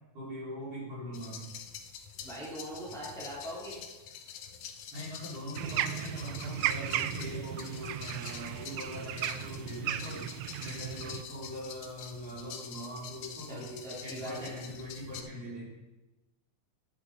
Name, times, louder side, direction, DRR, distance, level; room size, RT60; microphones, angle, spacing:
voice 1, 0.1-1.5 4.9-10.3 10.6-13.7 14.0-15.7, equal, 55° right, -8 dB, 5.6 m, -41 dB
sound 1, 1.1-15.2, left 7 dB, 70° left, 1.9 m, -46 dB
voice 2, 2.2-3.8 13.5-14.5, right 1 dB, ahead, -7 dB, 2.8 m, -41 dB
sound 2, 5.5-11.2, right 12 dB, 80° right, 1.8 m, -35 dB
11.0 x 10.0 x 4.0 m, 1.1 s
omnidirectional pair, 3.3 m